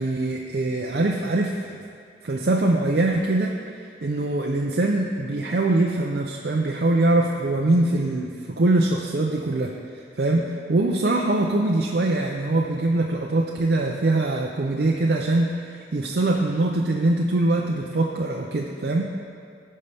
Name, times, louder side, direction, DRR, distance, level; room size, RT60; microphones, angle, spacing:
voice 1, 0.0-1.6 2.2-9.7 10.2-19.1, right 2 dB, 60° right, 0 dB, 0.5 m, -23 dB
16.0 x 5.5 x 3.4 m, 2.3 s
head